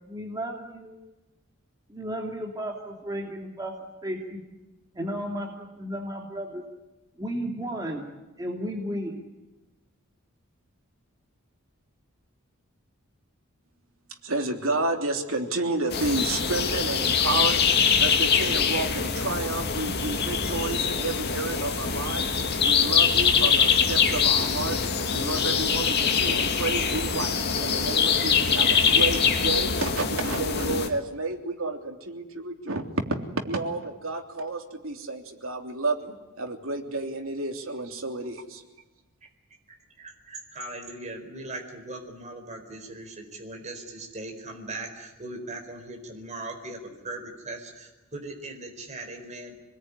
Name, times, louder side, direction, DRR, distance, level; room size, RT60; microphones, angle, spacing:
voice 1, 0.1-1.0 1.9-3.7 4.0-4.4 4.9-6.6 7.2-8.0 8.4-9.3, equal, 15° right, -1 dB, 3.0 m, -33 dB
voice 2, 14.2-17.6 18.0-22.3 22.6-24.8 25.1-32.8 33.5-38.6, right 2 dB, 70° right, 4 dB, 3.4 m, -31 dB
sound 1, 15.9-30.9, left 6 dB, 50° left, 2.4 m, -23 dB
voice 3, 40.0-49.5, right 2 dB, 35° right, 3 dB, 4.6 m, -39 dB
27.5 x 20.5 x 10.0 m, 1.1 s
head